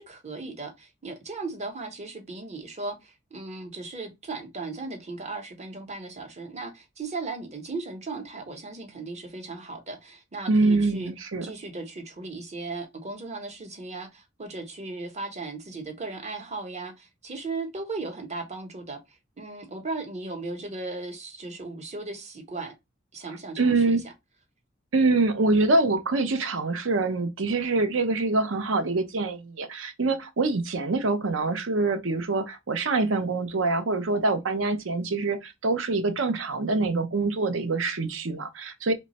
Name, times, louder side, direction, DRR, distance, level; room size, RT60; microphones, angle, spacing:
voice 1, 0.0-11.1 11.4-22.7 23.1-24.1, right 3 dB, 35° right, 0.9 m, -37 dB
voice 2, 10.5-11.5 23.6-24.0 24.9-38.9, right 3 dB, 70° right, 0.6 m, -25 dB
3.0 x 2.3 x 4.0 m
head